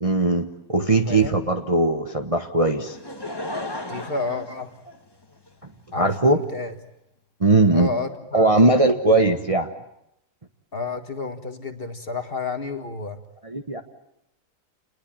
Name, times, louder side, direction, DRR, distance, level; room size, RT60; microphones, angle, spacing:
voice 1, 0.0-3.0 5.9-6.4 7.4-7.9 8.3-9.7 13.4-13.8, right 2 dB, 25° right, 5 dB, 1.1 m, -19 dB
voice 2, 1.0-1.4 3.9-4.7 5.9-6.1 6.5-6.7 7.7-8.9 10.7-13.2, left 3 dB, 35° left, 7 dB, 1.8 m, -30 dB
Laughter / Crowd, 2.9-5.5 6.2-6.3, left 1 dB, 15° left, 1.6 m, -34 dB
29.0 x 20.5 x 8.8 m, 0.81 s
omnidirectional pair, 1.8 m